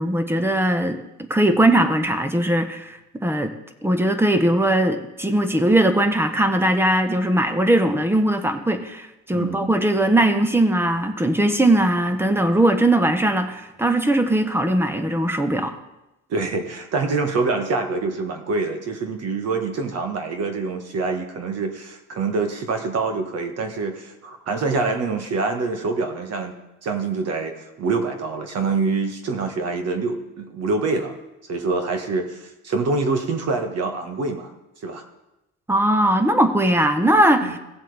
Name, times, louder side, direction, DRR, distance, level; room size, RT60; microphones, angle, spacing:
voice 1, 0.0-3.5 3.8-15.8 35.7-37.6, right 1 dB, 5° right, 8 dB, 1.0 m, -20 dB
voice 2, 9.3-9.7 16.3-26.5 26.8-31.2 31.5-34.5 34.8-35.0 37.4-37.6, right 3 dB, 50° right, 5 dB, 1.5 m, -25 dB
17.0 x 7.5 x 3.4 m, 0.94 s
cardioid pair, 105°, 32 cm